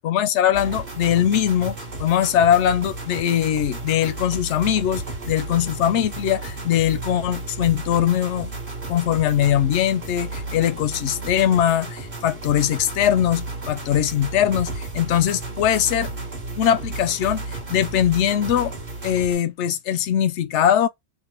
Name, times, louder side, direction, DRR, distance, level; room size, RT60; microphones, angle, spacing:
voice 1, 0.0-8.5 8.9-16.1 16.6-18.7 19.0-20.9, left 10 dB, 75° left, 0.9 m, -21 dB
sound 1, 0.5-19.3, right 3 dB, 45° right, 1.6 m, -33 dB
3.4 x 2.2 x 4.3 m
omnidirectional pair, 1.3 m